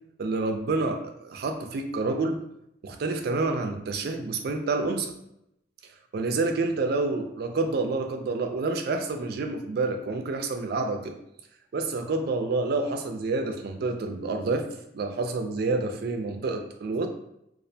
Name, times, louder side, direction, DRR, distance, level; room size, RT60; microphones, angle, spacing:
voice 1, 0.2-2.4 2.8-5.1 6.1-11.1 11.7-14.7 14.9-17.1, right 3 dB, 55° right, 6 dB, 0.3 m, -28 dB
2.4 x 2.1 x 2.6 m, 0.79 s
head